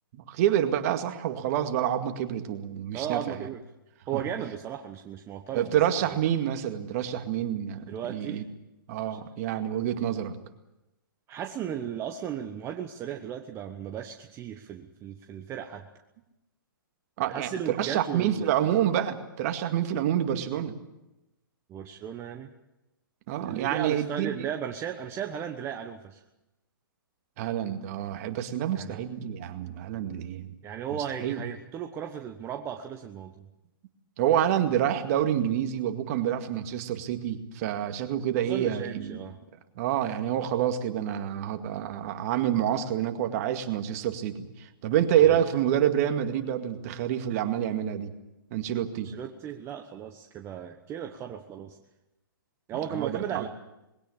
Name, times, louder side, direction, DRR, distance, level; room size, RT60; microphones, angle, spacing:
voice 1, 0.1-3.5 5.5-8.4 8.9-10.3 17.2-20.7 23.3-24.5 27.4-30.5 31.2-31.4 34.2-39.2 39.8-48.1 48.5-49.1 52.9-53.5, right 10 dB, 45° right, 7 dB, 2.1 m, -27 dB
voice 2, 2.9-3.6 4.1-5.7 7.9-8.4 11.3-15.9 17.3-18.5 21.7-22.5 23.5-26.2 28.7-29.0 30.6-33.5 38.3-39.4 45.2-45.4 49.0-51.8 52.7-53.5, right 9 dB, 20° right, 4 dB, 1.2 m, -36 dB
21.0 x 17.0 x 8.8 m, 0.96 s
hypercardioid pair, 135°, 12 cm